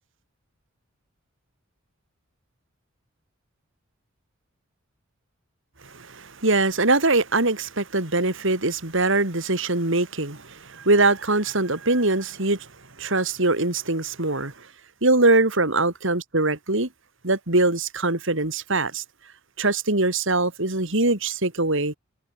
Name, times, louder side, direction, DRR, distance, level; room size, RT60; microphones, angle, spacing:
voice 1, 5.9-12.7 13.0-14.5 15.0-16.9 17.2-19.0 19.6-21.9, right 2 dB, 60° right, 3.4 m, -22 dB
head